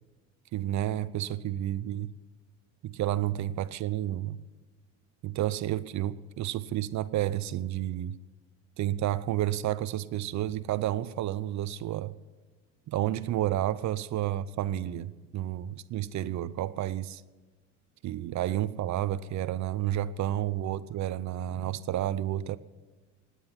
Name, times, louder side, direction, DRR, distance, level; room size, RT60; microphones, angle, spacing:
voice 1, 0.5-2.1 2.8-4.4 5.2-8.2 8.8-12.1 12.9-17.2 18.0-22.6, right 13 dB, 50° right, 0.7 m, -31 dB
17.5 x 10.0 x 5.8 m
supercardioid pair, 85°, 38 cm